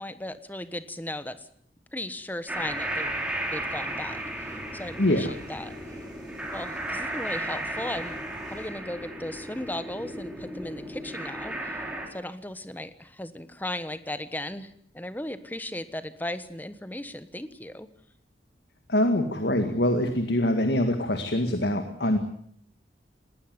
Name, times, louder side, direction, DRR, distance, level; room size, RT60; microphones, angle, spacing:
voice 1, 0.0-1.5 1.9-3.1 3.5-5.7 6.5-8.1 8.5-11.8 12.1-17.9, left 1 dB, 10° left, 12 dB, 1.2 m, -36 dB
sound 1, 2.5-12.1, right 1 dB, 5° right, 4.3 m, -34 dB
sound 2, 2.7-8.7, equal, 25° right, 6.0 m, -50 dB
voice 2, 5.0-5.3 18.9-22.2, left 1 dB, 60° left, 7 dB, 1.9 m, -24 dB
19.0 x 18.5 x 9.5 m, 0.66 s
head